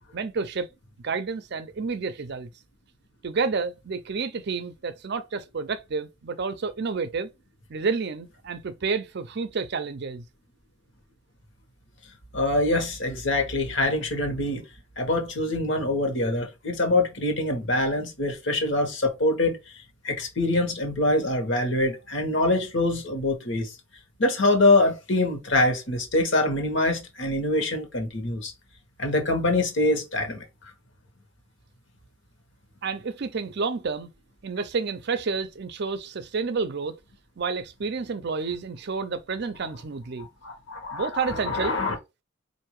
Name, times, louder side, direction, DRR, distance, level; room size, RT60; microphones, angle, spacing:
voice 1, 0.1-0.7 1.0-2.5 3.2-7.3 7.7-10.2 32.8-34.1 34.4-37.0 37.4-40.3 40.9-41.8, right 4 dB, 55° right, 0.5 m, -30 dB
voice 2, 12.3-14.6 15.0-19.6 20.0-23.7 24.2-28.5 29.0-30.4 40.2-41.9, left 2 dB, 60° left, 1.2 m, -24 dB
4.6 x 2.6 x 3.0 m
head